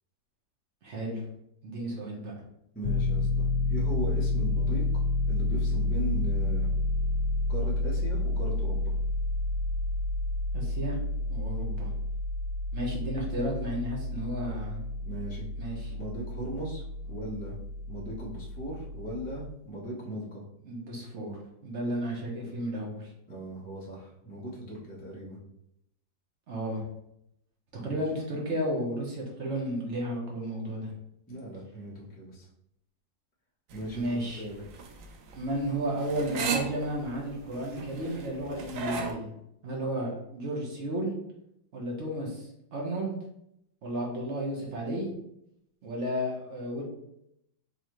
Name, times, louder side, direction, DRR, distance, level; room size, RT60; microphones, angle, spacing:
voice 1, 0.8-1.2 1.6-2.3 10.5-11.0 11.3-11.9 12.7-14.8 15.6-15.9 20.6-23.1 26.5-26.8 27.8-30.9 33.9-34.4 35.3-39.3 39.6-41.1 41.7-42.4 42.7-43.1 43.8-45.1 45.8-46.8, right 1 dB, 45° right, -2 dB, 1.2 m, -33 dB
voice 2, 2.7-4.8 5.3-6.7 7.5-8.9 15.0-15.5 15.9-17.6 17.9-20.4 23.3-25.4 27.8-28.0 31.3-32.5 33.7-34.6, right 1 dB, 10° left, -7 dB, 0.6 m, -38 dB
Piano, 2.8-19.5, left 2 dB, 90° left, 1.3 m, -30 dB
sound 1, 33.7-39.1, right 5 dB, 80° right, 0.7 m, -35 dB
4.0 x 3.1 x 3.1 m, 0.78 s
omnidirectional pair, 2.0 m